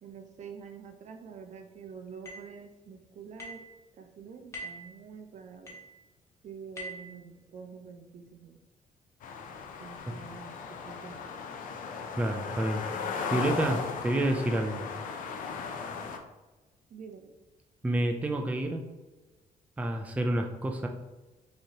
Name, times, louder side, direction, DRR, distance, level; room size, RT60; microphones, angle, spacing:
voice 1, 0.0-3.6 4.0-5.8 6.4-8.6 9.8-11.4 16.9-17.3, right 6 dB, 55° right, 6 dB, 0.6 m, -47 dB
sound 1, 2.3-2.5 3.4-3.7 4.5-4.9 5.7-5.9 6.8-7.1, right 1 dB, 20° left, 1.4 m, -42 dB
sound 2, 9.2-16.2, left 5 dB, 70° left, 0.6 m, -37 dB
voice 2, 12.2-14.8 17.8-18.9 19.8-20.9, right 1 dB, 10° right, 4 dB, 0.4 m, -29 dB
6.2 x 2.9 x 2.8 m, 1.2 s
cardioid pair, 120°, 14 cm